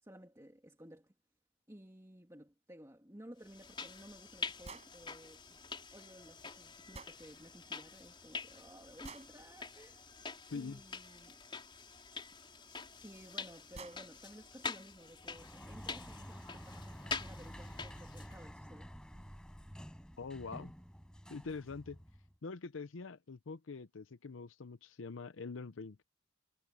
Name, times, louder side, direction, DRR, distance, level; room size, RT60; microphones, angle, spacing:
voice 1, 0.0-1.1 1.7-5.6 5.9-10.1 10.5-11.4 13.0-18.9, equal, 15° right, 2.6 m, -55 dB
sound 1, 3.4-18.4, left 5 dB, 25° left, 4.4 m, -46 dB
sound 2, 4.6-4.9 6.9-7.2 9.0-9.3 11.6-11.7 13.0-13.1 13.4-13.5 13.7-14.0, right 4 dB, 35° right, 7.0 m, -49 dB
voice 2, 10.5-10.8 20.2-20.7 21.3-22.0 22.4-26.0, left 4 dB, 85° left, 0.7 m, -44 dB
Sliding door, 15.2-22.4, equal, 5° left, 5.2 m, -50 dB
head